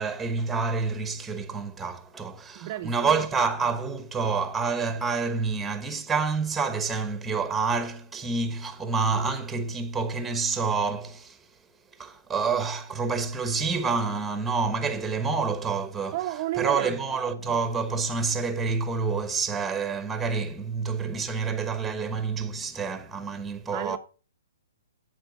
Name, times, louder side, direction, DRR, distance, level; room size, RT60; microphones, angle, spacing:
voice 1, 0.0-11.4 12.0-16.2 16.6-24.0, right 4 dB, 5° right, 1.0 m, -28 dB
voice 2, 2.6-2.9 16.1-17.0 23.7-24.0, right 15 dB, 35° right, 0.6 m, -31 dB
8.8 x 7.9 x 4.0 m
hypercardioid pair, 155°, 0 cm